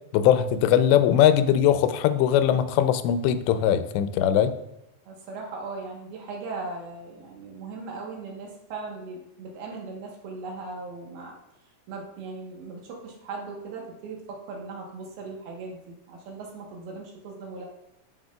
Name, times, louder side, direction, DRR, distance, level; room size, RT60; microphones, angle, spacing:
voice 1, 0.1-4.6, left 10 dB, 90° left, 11 dB, 2.8 m, -20 dB
voice 2, 5.1-11.3 11.9-17.7, right 3 dB, 70° right, -1 dB, 2.9 m, -38 dB
13.5 x 5.9 x 2.3 m, 0.85 s
omnidirectional pair, 4.9 m